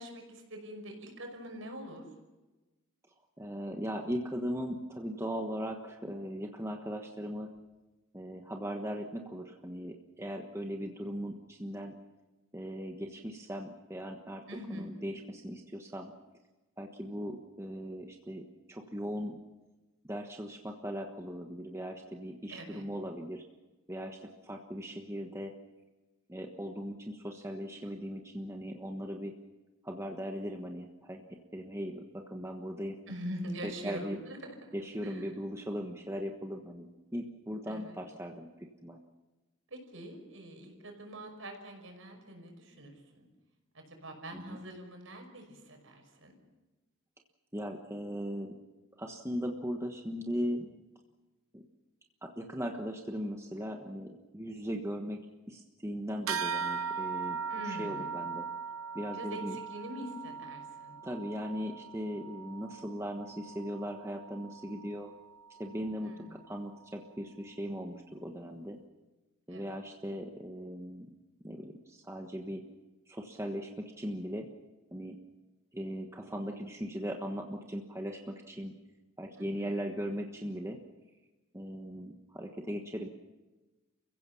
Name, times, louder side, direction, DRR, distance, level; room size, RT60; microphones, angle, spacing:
voice 1, 0.0-2.1 14.5-15.0 22.5-22.8 33.1-34.7 35.0-35.4 37.7-38.0 39.7-43.3 43.7-46.3 57.5-58.2 59.1-61.0 66.0-66.4 69.5-69.7 79.3-79.8, right 1 dB, 70° right, 4 dB, 5.6 m, -44 dB
voice 2, 3.4-7.5 8.1-11.9 12.5-14.4 14.7-16.1 16.8-19.4 20.0-23.4 23.9-25.5 26.3-29.3 29.8-31.3 31.5-33.0 33.6-34.2 34.7-38.5 38.8-39.0 44.3-44.6 47.5-48.6 49.0-50.7 51.5-51.6 52.2-55.2 55.5-57.4 57.7-58.5 58.9-59.6 61.0-65.1 65.5-68.8 69.5-71.1 71.4-72.6 73.1-74.5 74.9-75.2 75.7-78.7 79.2-80.8 81.5-83.1, equal, 15° right, 2 dB, 1.3 m, -38 dB
sound 1, 56.3-66.1, right 6 dB, 90° right, 1.0 m, -40 dB
29.5 x 16.0 x 7.1 m, 1.1 s
head